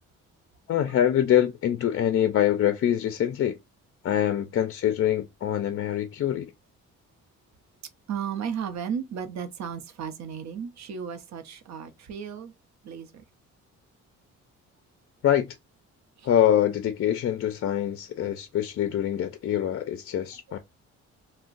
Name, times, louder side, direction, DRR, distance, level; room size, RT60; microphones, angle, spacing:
voice 1, 0.7-3.6 4.0-6.5 15.2-15.6 16.2-20.6, left 10 dB, 50° left, 0.4 m, -24 dB
voice 2, 8.1-12.5 12.8-13.2 16.2-16.3, right 7 dB, 65° right, 0.7 m, -34 dB
2.4 x 2.2 x 3.8 m
cardioid pair, 90°, 30 cm